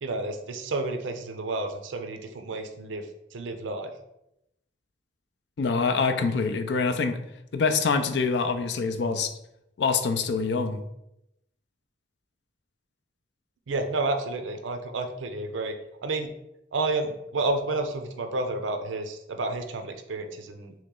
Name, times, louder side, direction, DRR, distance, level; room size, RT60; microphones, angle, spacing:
voice 1, 0.0-3.1 3.3-3.9 13.7-15.7 16.0-16.3 16.7-20.7, right 2 dB, 90° right, 7 dB, 0.5 m, -30 dB
voice 2, 5.6-7.2 7.5-9.3 9.8-10.8, left 4 dB, 65° left, 8 dB, 0.4 m, -25 dB
3.1 x 3.0 x 3.7 m, 0.83 s
head